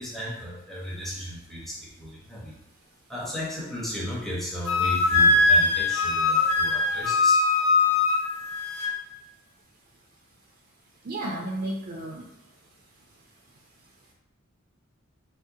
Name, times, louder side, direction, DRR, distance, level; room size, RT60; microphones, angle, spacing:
voice 1, 0.0-2.6 3.1-7.5, equal, ahead, -5 dB, 0.6 m, -35 dB
Wind instrument woodwind instrument, 4.6-8.9, left 3 dB, 80° left, 0.6 m, -21 dB
voice 2, 11.0-12.3, right 1 dB, 45° right, -2 dB, 0.4 m, -32 dB
3.6 x 2.1 x 2.7 m, 0.88 s
head